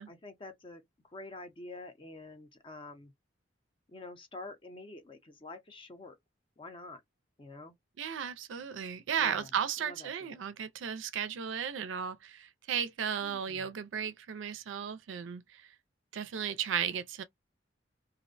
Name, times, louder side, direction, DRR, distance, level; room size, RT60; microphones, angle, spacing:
voice 1, 0.0-3.1 3.9-6.2 6.6-7.0 7.4-7.7 9.2-9.5 9.8-10.4 13.1-13.7, left 2 dB, 30° left, 0.5 m, -47 dB
voice 2, 8.0-15.6 16.1-17.2, right 8 dB, 85° right, 0.4 m, -35 dB
2.4 x 2.0 x 2.5 m
head